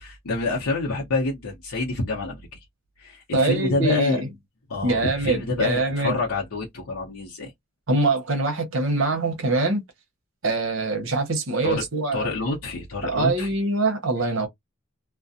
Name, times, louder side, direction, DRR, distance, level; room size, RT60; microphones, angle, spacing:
voice 1, 0.0-2.6 3.0-4.2 4.7-7.5 11.6-11.8 12.1-13.5, left 3 dB, 85° left, 0.7 m, -27 dB
voice 2, 3.3-4.3 4.8-6.2 7.9-9.8 10.4-12.3 13.0-14.5, right 2 dB, 65° right, 0.9 m, -24 dB
2.4 x 2.1 x 2.6 m
head